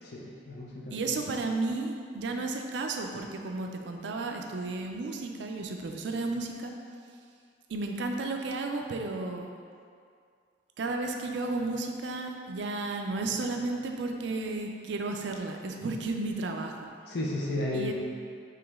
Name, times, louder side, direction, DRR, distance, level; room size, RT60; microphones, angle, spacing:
voice 1, 0.0-1.2 17.1-17.9, left 1 dB, 60° left, -4 dB, 0.6 m, -33 dB
voice 2, 0.9-6.7 7.7-9.5 10.8-16.9 17.7-17.9, right 3 dB, 70° right, 3 dB, 0.4 m, -33 dB
4.9 x 3.1 x 3.5 m, 2.2 s
head